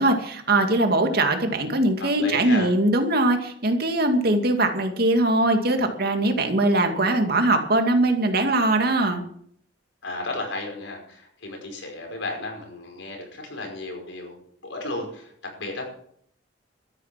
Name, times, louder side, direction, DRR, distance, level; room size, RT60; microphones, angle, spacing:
voice 1, 0.0-9.2, right 2 dB, 55° right, 5 dB, 2.4 m, -21 dB
voice 2, 2.0-2.7 10.0-15.3 15.6-15.8, left 2 dB, 85° left, 2 dB, 5.3 m, -34 dB
13.0 x 10.5 x 7.6 m, 0.64 s
head